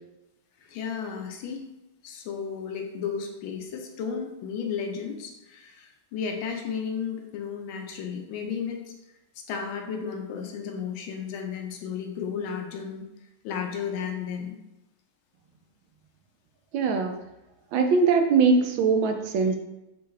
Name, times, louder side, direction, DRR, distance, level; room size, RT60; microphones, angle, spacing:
voice 1, 0.6-1.6 2.0-8.8 9.4-13.0 13.4-14.6, left 6 dB, 90° left, 2 dB, 1.5 m, -33 dB
voice 2, 16.7-17.1 17.7-19.6, right 5 dB, 80° right, 5 dB, 1.3 m, -21 dB
5.9 x 2.3 x 3.2 m, 0.94 s
omnidirectional pair, 2.2 m